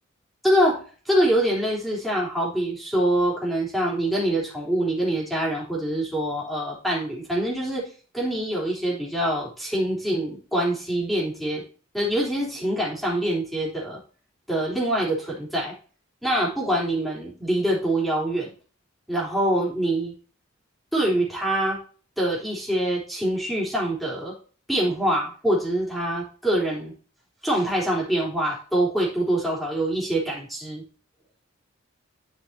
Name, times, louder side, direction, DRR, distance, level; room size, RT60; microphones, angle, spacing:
voice 1, 0.4-7.9 8.1-11.6 11.9-14.0 14.5-15.8 16.2-18.5 19.1-20.1 20.9-21.8 22.2-24.3 24.7-26.9 27.4-30.8, right 1 dB, ahead, -5 dB, 3.7 m, -25 dB
11.0 x 5.7 x 2.9 m, 0.39 s
head